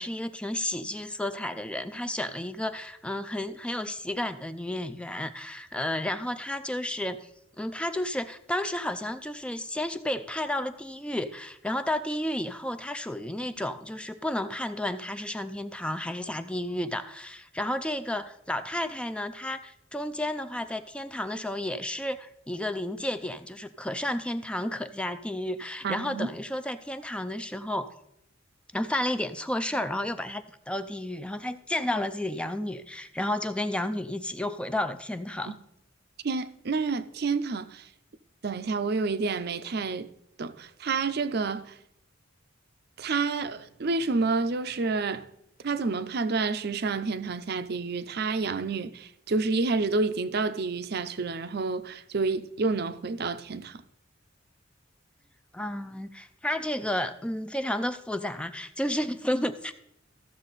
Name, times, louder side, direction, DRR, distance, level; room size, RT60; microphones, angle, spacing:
voice 1, 0.0-7.3 7.6-28.0 28.7-35.5 55.5-59.7, left 1 dB, 5° left, 0.4 m, -32 dB
voice 2, 25.8-26.3 35.5-35.6 36.2-37.9 38.4-40.1 40.4-41.8 43.0-45.3 45.6-53.8, right 4 dB, 55° right, 0.6 m, -29 dB
14.5 x 6.5 x 4.1 m
head